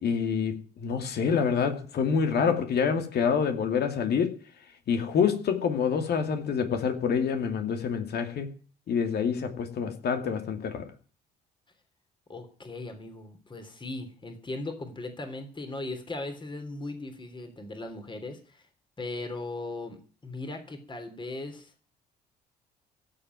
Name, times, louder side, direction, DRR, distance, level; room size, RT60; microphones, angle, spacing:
voice 1, 0.0-4.4 4.9-8.5 8.9-10.9, left 6 dB, 50° left, 6 dB, 2.6 m, -27 dB
voice 2, 12.3-18.7 19.0-21.7, left 2 dB, 20° left, 6 dB, 3.4 m, -38 dB
15.5 x 7.7 x 9.2 m, 0.40 s
figure-of-eight pair, 45°, 21 cm